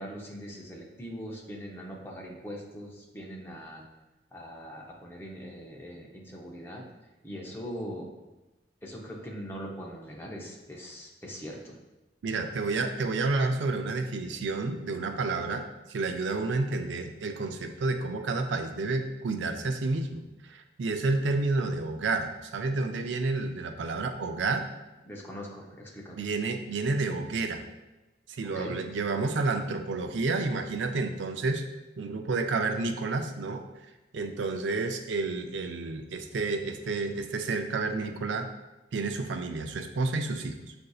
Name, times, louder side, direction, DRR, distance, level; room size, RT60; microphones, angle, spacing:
voice 1, 0.0-3.8 4.3-6.8 7.2-8.1 8.8-11.8 25.0-26.2 28.5-28.8, equal, 15° left, -2 dB, 0.7 m, -41 dB
voice 2, 12.2-24.7 26.2-27.6 28.3-31.6 32.0-33.6 34.1-38.5 38.9-40.7, right 3 dB, 85° right, 5 dB, 0.4 m, -30 dB
7.4 x 2.6 x 2.3 m, 1.0 s
head